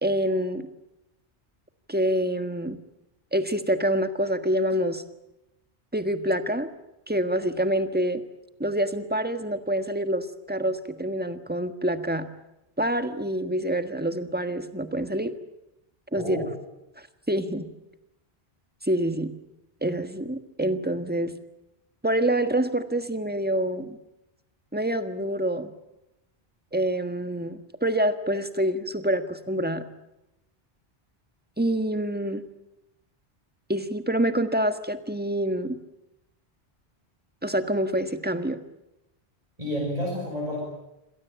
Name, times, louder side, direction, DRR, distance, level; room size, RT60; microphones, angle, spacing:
voice 1, 0.0-0.7 1.9-2.8 3.3-5.0 5.9-6.7 7.1-8.2 8.6-12.3 12.8-15.3 16.1-16.4 17.3-17.7 18.8-19.3 19.8-21.3 22.0-24.0 24.7-25.7 26.7-29.9 31.6-32.4 33.7-35.8 37.4-38.6, right 1 dB, 10° right, 9 dB, 1.5 m, -26 dB
voice 2, 16.2-16.5 39.6-40.6, equal, 40° right, -2 dB, 6.7 m, -30 dB
26.5 x 17.5 x 9.0 m, 0.91 s
omnidirectional pair, 1.1 m